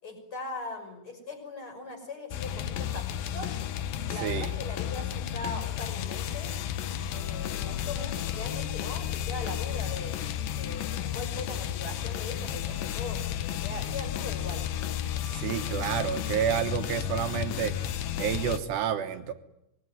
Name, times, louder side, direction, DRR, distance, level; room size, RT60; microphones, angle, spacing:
voice 1, 0.0-3.6 4.1-6.6 7.1-10.2 10.5-14.7, left 3 dB, 25° left, 5 dB, 6.3 m, -40 dB
sound 1, 2.3-18.6, left 10 dB, 70° left, 2.2 m, -33 dB
voice 2, 4.0-4.5 15.3-17.8 18.2-19.3, right 9 dB, 70° right, 7 dB, 3.1 m, -30 dB
25.5 x 21.5 x 9.6 m, 0.82 s
omnidirectional pair, 5.5 m